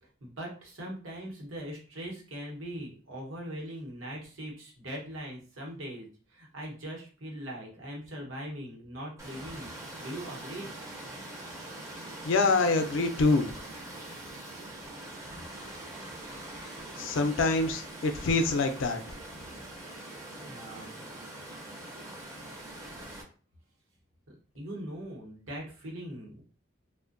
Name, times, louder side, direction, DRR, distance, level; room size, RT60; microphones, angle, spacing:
voice 1, 0.2-10.7 20.4-21.0 24.3-26.4, equal, 80° right, -2 dB, 0.9 m, -41 dB
Water, 9.2-23.2, right 1 dB, 15° right, 0.4 m, -43 dB
voice 2, 12.2-13.5 17.0-19.0, left 3 dB, 70° left, 6 dB, 0.4 m, -25 dB
2.5 x 2.1 x 2.5 m, 0.39 s
head